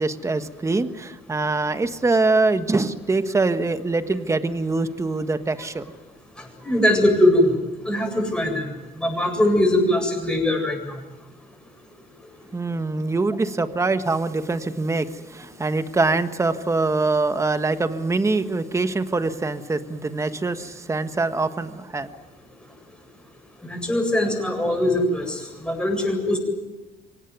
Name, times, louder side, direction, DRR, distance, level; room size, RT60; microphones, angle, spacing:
voice 1, 0.0-5.8 12.5-22.1, right 3 dB, 15° right, 9 dB, 1.5 m, -24 dB
voice 2, 6.6-7.5 7.8-8.7 9.0-10.8 23.6-26.4, left 1 dB, 5° left, 2 dB, 8.0 m, -21 dB
24.5 x 19.0 x 9.5 m, 1.1 s
cardioid pair, 110°, 17 cm